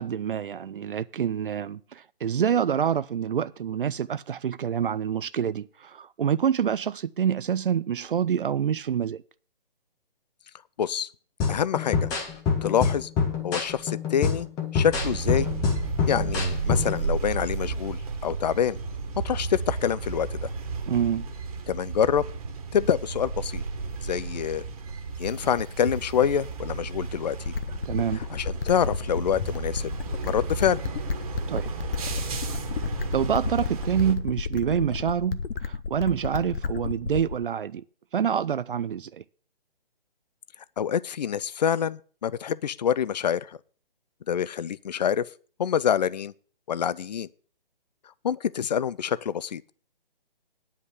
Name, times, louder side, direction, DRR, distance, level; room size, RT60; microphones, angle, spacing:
voice 1, 0.0-9.2 20.9-21.3 27.9-28.2 31.5-31.7 33.1-37.8 38.1-39.2, right 8 dB, 65° right, 0.5 m, -27 dB
voice 2, 10.8-11.1 11.5-12.1 12.6-13.1 13.4-14.5 14.7-15.5 16.1-18.8 19.2-20.5 21.7-22.2 22.7-23.6 24.0-24.6 25.2-27.5 28.3-29.9 30.2-30.8 40.8-43.6 44.3-45.3 45.6-46.3 46.7-47.3 48.2-49.7, left 8 dB, 45° left, 0.5 m, -26 dB
sound 1, 11.4-17.0, left 5 dB, 10° left, 1.0 m, -27 dB
sound 2, 14.9-34.1, right 4 dB, 35° right, 1.7 m, -33 dB
sound 3, 27.4-37.4, left 5 dB, 70° left, 0.9 m, -32 dB
9.9 x 5.6 x 8.1 m
hypercardioid pair, 155°, 30 cm